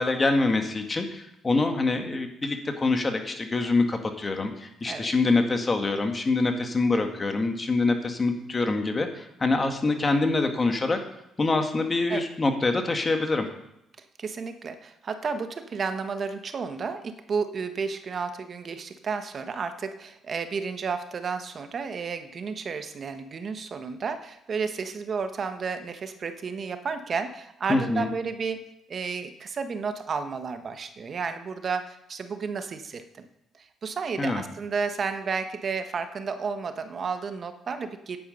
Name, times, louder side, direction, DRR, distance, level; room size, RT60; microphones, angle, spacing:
voice 1, 0.0-11.0 11.4-13.5 27.7-28.1 34.2-34.4, left 3 dB, 30° left, 5 dB, 1.9 m, -25 dB
voice 2, 4.8-5.1 12.1-12.3 14.2-33.2 33.5-38.2, right 5 dB, 50° right, 8 dB, 1.1 m, -32 dB
9.9 x 8.8 x 5.4 m, 0.81 s
supercardioid pair, 55°, 0 cm